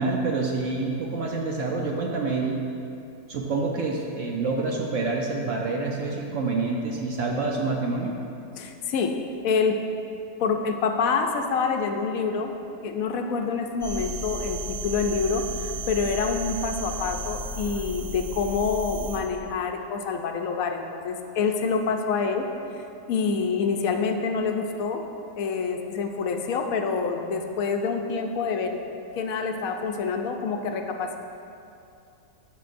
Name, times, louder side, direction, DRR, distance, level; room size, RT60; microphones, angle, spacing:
voice 1, 0.0-2.6 3.3-8.1, right 3 dB, 60° right, 0 dB, 0.9 m, -27 dB
voice 2, 8.6-9.1 9.4-9.7 10.4-12.5 12.8-22.5 23.1-25.0 25.3-28.8 29.2-31.2, left 5 dB, 65° left, 4 dB, 1.0 m, -27 dB
sound 1, 13.8-19.2, right 1 dB, 40° right, 1.4 m, -34 dB
13.0 x 5.7 x 2.5 m, 2.6 s
omnidirectional pair, 1.7 m